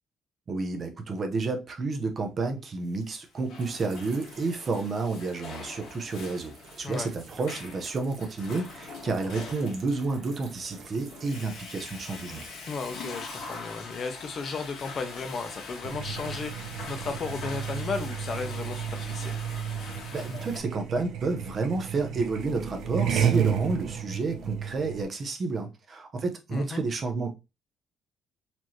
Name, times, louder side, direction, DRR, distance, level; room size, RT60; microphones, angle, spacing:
voice 1, 0.5-12.4 20.1-27.4, right 3 dB, 35° right, 0.7 m, -30 dB
Water / Toilet flush, 3.1-20.6, left 4 dB, 80° left, 1.4 m, -43 dB
sound 1, 3.5-13.9 14.2-16.7 17.2-18.0, right 5 dB, 60° right, 1.0 m, -52 dB
voice 2, 12.7-19.4 26.5-26.8, left 4 dB, 40° left, 0.7 m, -34 dB
sound 2, 15.8-25.0, right 8 dB, 80° right, 0.7 m, -32 dB
4.3 x 2.8 x 3.0 m
cardioid pair, 165°, 0 cm